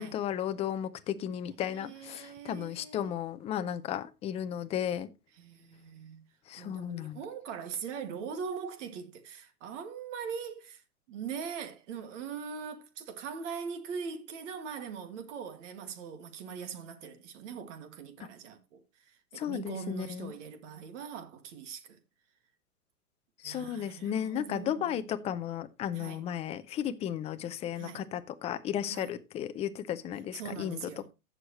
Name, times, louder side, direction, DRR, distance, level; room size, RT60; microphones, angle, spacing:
voice 1, 0.0-5.1 6.5-7.2 19.4-20.3 23.4-31.1, left 10 dB, 15° left, 0.5 m, -34 dB
voice 2, 1.6-3.1 5.3-6.2 6.6-10.8 11.1-22.0 23.4-25.0 25.9-26.2 27.8-28.0 28.9-29.1 30.3-31.1, right 6 dB, 55° right, 2.1 m, -41 dB
15.0 x 6.6 x 3.0 m
hypercardioid pair, 120°, 44 cm